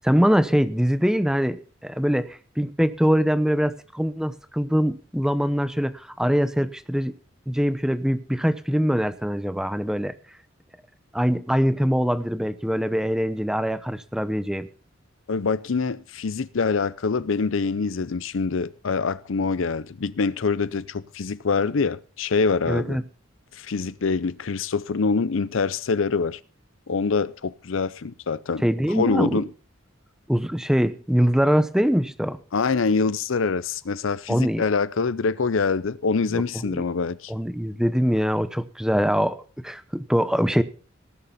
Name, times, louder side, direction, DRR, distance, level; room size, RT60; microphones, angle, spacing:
voice 1, 0.0-7.1 7.5-10.1 11.1-14.7 22.7-23.0 28.6-29.5 30.3-32.4 34.3-34.6 36.3-36.8 37.3-39.4 39.6-40.6, equal, 5° right, 0.8 m, -23 dB
voice 2, 15.3-23.0 23.5-26.4 26.9-28.6 28.9-29.5 32.5-37.3, left 4 dB, 70° left, 0.6 m, -25 dB
18.0 x 6.8 x 5.7 m
head